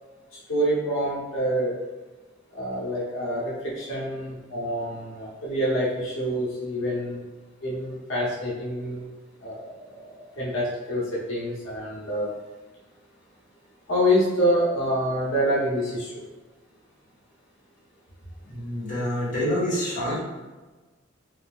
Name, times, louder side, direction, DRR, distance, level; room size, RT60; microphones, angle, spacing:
voice 1, 0.5-1.7 2.5-7.2 7.6-9.1 9.4-9.7 10.4-12.3 13.9-16.1 20.1-20.2, equal, 90° left, -6 dB, 1.0 m, -26 dB
voice 2, 18.4-20.2, equal, 40° left, -8 dB, 1.0 m, -27 dB
3.3 x 3.0 x 2.3 m, 1.2 s
head